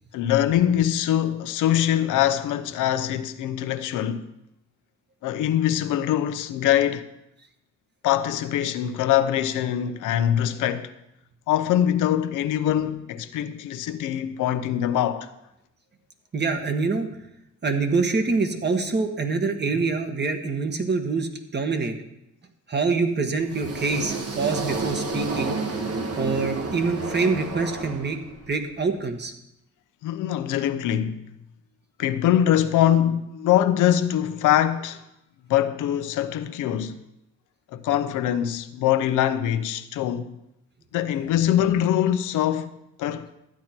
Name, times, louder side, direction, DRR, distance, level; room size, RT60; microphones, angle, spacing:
voice 1, 0.1-4.2 5.2-7.1 8.0-10.9 11.5-15.3 30.0-31.2 32.0-35.0 35.5-37.0 37.7-40.3 40.9-42.7 43.0-43.3, left 11 dB, 85° left, 0.8 m, -23 dB
voice 2, 16.3-17.1 17.6-21.9 22.7-25.6 26.2-28.2 28.5-29.3, right 4 dB, 35° right, 1.5 m, -25 dB
sound 1, 23.4-28.5, right 3 dB, 50° right, 2.0 m, -30 dB
13.0 x 9.4 x 4.4 m
cardioid pair, 90°, 30 cm